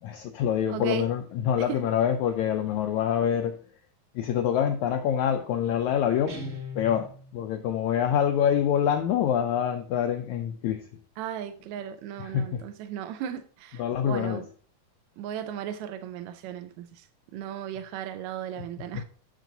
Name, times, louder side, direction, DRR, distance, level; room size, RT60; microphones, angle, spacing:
voice 1, 0.0-3.6 4.1-6.4 6.7-10.9 12.2-12.6 13.7-14.4 18.6-18.7 18.9-19.0, left 9 dB, 80° left, 1.7 m, -26 dB
voice 2, 0.7-1.1 1.6-1.8 11.2-14.4 15.2-19.0, right 10 dB, 80° right, 1.6 m, -36 dB
Guitar, 6.3-7.5, left 1 dB, 30° right, 1.5 m, -39 dB
7.5 x 6.7 x 3.9 m
omnidirectional pair, 3.9 m